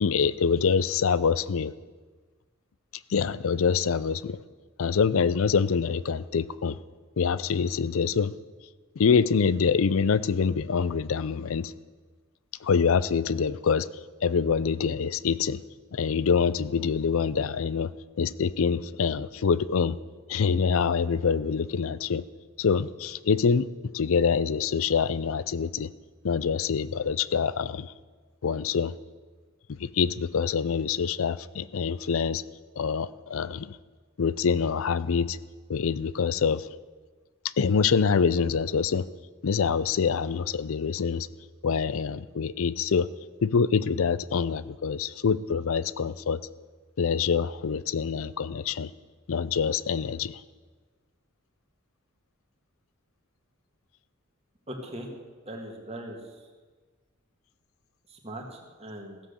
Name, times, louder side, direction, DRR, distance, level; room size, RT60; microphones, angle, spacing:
voice 1, 0.0-1.7 3.1-4.4 4.8-6.8 7.2-8.3 9.0-11.7 12.6-13.9 14.2-15.6 15.9-17.9 18.2-20.0 20.3-22.2 22.6-23.7 23.9-25.9 26.2-27.9 28.4-28.9 29.8-32.4 32.8-33.8 34.2-35.4 35.7-36.7 37.6-39.1 39.4-41.3 41.6-43.1 43.4-46.4 47.0-48.9 49.3-50.4, left 6 dB, 70° left, 17 dB, 0.5 m, -25 dB
voice 2, 54.7-55.1 55.5-56.2 58.1-59.2, right 1 dB, 30° right, 1 dB, 1.8 m, -39 dB
15.5 x 7.5 x 6.7 m, 1.4 s
head